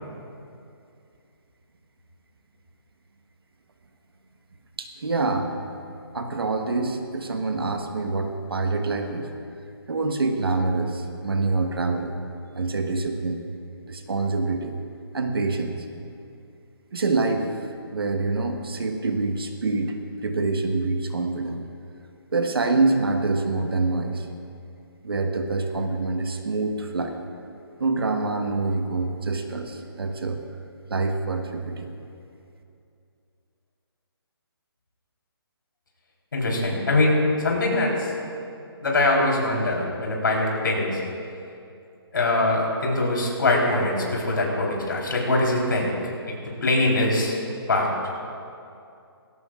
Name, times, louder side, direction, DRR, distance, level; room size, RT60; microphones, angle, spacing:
voice 1, 4.8-5.5 6.1-9.3 9.9-12.1 12.5-13.4 13.9-14.8 15.1-15.8 16.9-17.5 17.9-21.6 22.3-24.3 25.0-27.2 27.8-30.4 30.9-31.9, right 3 dB, 65° right, 4 dB, 1.4 m, -26 dB
voice 2, 36.3-37.9 38.8-41.0 42.1-45.9 46.3-46.4 46.6-47.3 47.7-47.9, left 2 dB, 55° left, -2 dB, 3.8 m, -22 dB
19.0 x 17.0 x 2.5 m, 2.5 s
hypercardioid pair, 180°, 13 cm